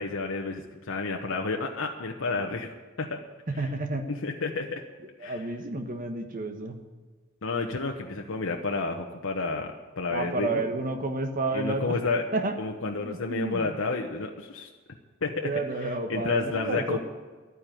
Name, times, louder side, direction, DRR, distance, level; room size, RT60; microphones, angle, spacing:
voice 1, 0.0-3.2 3.5-3.7 4.1-4.8 5.2-5.5 7.4-10.6 11.5-12.2 12.6-14.7 15.2-15.5 15.8-17.0, left 3 dB, 85° left, 2 dB, 1.0 m, -31 dB
voice 2, 3.6-4.0 5.2-6.8 10.1-12.0 12.3-12.5 12.8-13.7 15.3-17.0, right 2 dB, 45° right, 6 dB, 1.2 m, -31 dB
11.5 x 9.6 x 9.1 m, 1.3 s
head